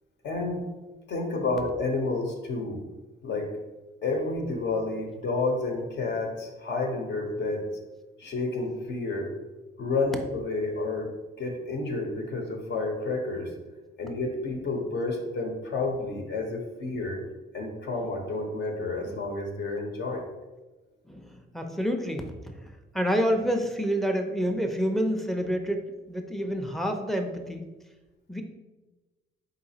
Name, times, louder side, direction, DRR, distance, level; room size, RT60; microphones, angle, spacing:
voice 1, 0.2-0.6 1.1-2.8 3.2-3.5 4.0-7.7 8.2-9.3 9.8-11.1 11.4-13.5 14.0-17.2 17.5-20.3, left 3 dB, 60° left, 2 dB, 0.9 m, -30 dB
voice 2, 21.1-22.5 22.9-27.7 28.3-28.4, equal, ahead, 4 dB, 0.5 m, -28 dB
4.0 x 3.8 x 2.8 m, 1.1 s
cardioid pair, 90°, 20 cm